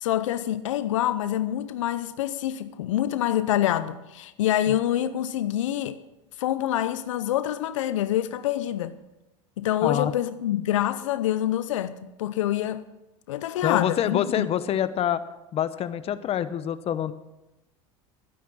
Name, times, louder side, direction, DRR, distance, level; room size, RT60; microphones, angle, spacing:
voice 1, 0.0-6.0 6.4-8.9 9.6-12.9 13.3-14.5, left 12 dB, 85° left, 0.6 m, -26 dB
voice 2, 9.8-10.1 13.6-15.2 15.5-17.1, left 10 dB, 40° left, 0.9 m, -26 dB
12.5 x 10.0 x 6.2 m
hypercardioid pair, 95°, 16 cm